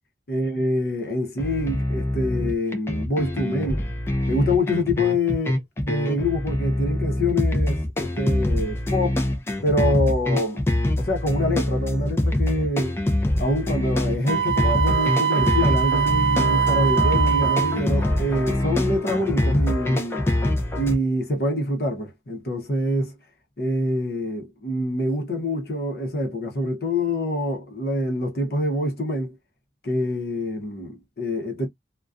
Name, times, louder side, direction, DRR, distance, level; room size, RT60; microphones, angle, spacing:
voice 1, 0.3-3.8 4.3-9.2 9.6-10.6 11.0-13.0 13.4-20.2 20.8-23.2 23.6-29.4 29.8-31.7, left 1 dB, 55° left, 0.7 m, -25 dB
sound 1, 1.4-21.0, left 1 dB, 15° left, 0.4 m, -24 dB
Wind instrument woodwind instrument, 14.3-17.8, right 8 dB, 65° right, 0.4 m, -22 dB
2.3 x 2.2 x 2.4 m
head